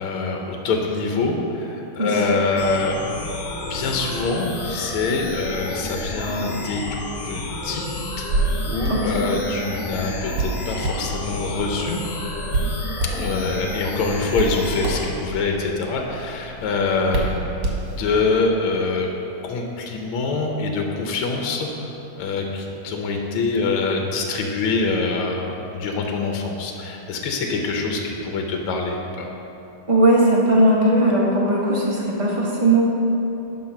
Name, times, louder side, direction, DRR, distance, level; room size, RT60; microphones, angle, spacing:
voice 1, 0.0-3.0 3.6-7.9 8.2-12.0 13.1-17.4 17.8-19.1 19.4-29.3, left 3 dB, 75° left, 2 dB, 1.6 m, -25 dB
sound 1, 2.6-15.1, left 2 dB, 50° left, 1.0 m, -31 dB
Hands, 8.1-18.3, right 2 dB, 55° right, 1.8 m, -29 dB
voice 2, 8.9-9.3 29.9-32.8, right 1 dB, 20° right, -5 dB, 0.9 m, -18 dB
10.5 x 3.9 x 5.9 m, 2.9 s
omnidirectional pair, 2.4 m